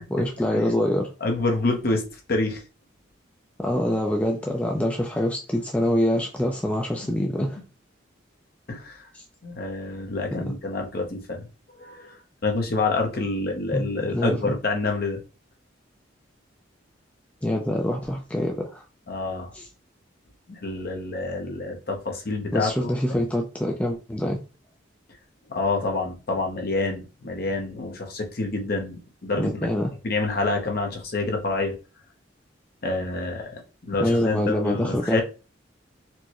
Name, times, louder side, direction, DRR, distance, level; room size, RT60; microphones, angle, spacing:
voice 1, 0.1-1.1 3.6-7.6 9.1-9.2 10.5-10.6 13.7-14.5 17.4-18.8 19.5-19.7 22.5-24.4 29.4-29.9 34.0-35.2, left 1 dB, 5° left, 0.3 m, -25 dB
voice 2, 1.2-2.6 8.7-9.0 9.4-11.5 11.8-15.2 19.1-19.5 20.5-23.2 25.5-29.7 30.0-31.7 32.8-33.6 33.9-35.2, left 3 dB, 50° left, 0.7 m, -27 dB
4.4 x 2.1 x 2.9 m
head